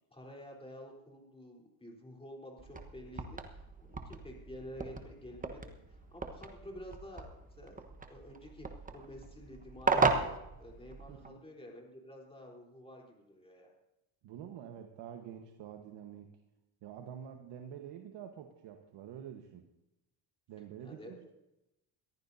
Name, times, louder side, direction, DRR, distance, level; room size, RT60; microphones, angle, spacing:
voice 1, 0.1-7.8 8.1-13.7 20.8-21.3, left 1 dB, 10° left, -1 dB, 3.7 m, -50 dB
sound 1, 2.6-11.3, right 4 dB, 15° right, 1.2 m, -36 dB
voice 2, 11.1-11.4 14.2-16.3 16.8-19.7 20.5-21.3, right 9 dB, 60° right, 4 dB, 1.4 m, -47 dB
22.0 x 15.0 x 2.7 m, 0.90 s
cardioid pair, 115°, 48 cm